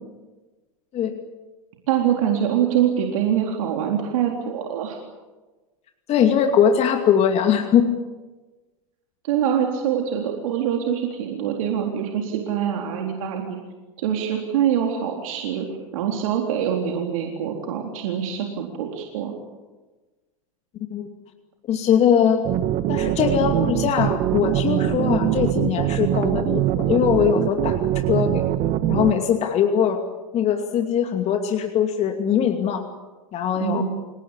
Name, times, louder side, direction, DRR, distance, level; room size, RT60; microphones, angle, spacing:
voice 1, 1.9-5.0 9.2-13.6 14.0-15.7 15.9-19.3 33.6-33.8, right 9 dB, 70° right, 1 dB, 3.9 m, -24 dB
voice 2, 6.1-7.9 20.9-21.1 21.7-22.4 22.9-27.8 28.1-28.4 28.9-30.0 30.3-32.8 33.3-33.8, left 8 dB, 35° left, 5 dB, 2.5 m, -21 dB
sound 1, 22.4-29.1, right 13 dB, 40° right, 1.6 m, -23 dB
28.5 x 18.5 x 8.3 m, 1.2 s
hypercardioid pair, 110°, 18 cm